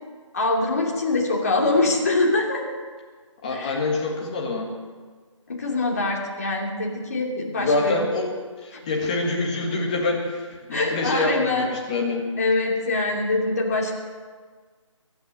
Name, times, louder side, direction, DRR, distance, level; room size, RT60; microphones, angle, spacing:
voice 1, 0.3-2.6 3.5-3.8 5.5-8.1 8.7-8.8 10.7-11.7 12.4-13.9, left 2 dB, 30° left, -2 dB, 2.8 m, -24 dB
voice 2, 3.4-4.7 7.6-8.3 8.6-12.2, left 2 dB, 15° left, -1 dB, 1.6 m, -25 dB
23.0 x 9.1 x 6.7 m, 1.5 s
figure-of-eight pair, 170°, 17 cm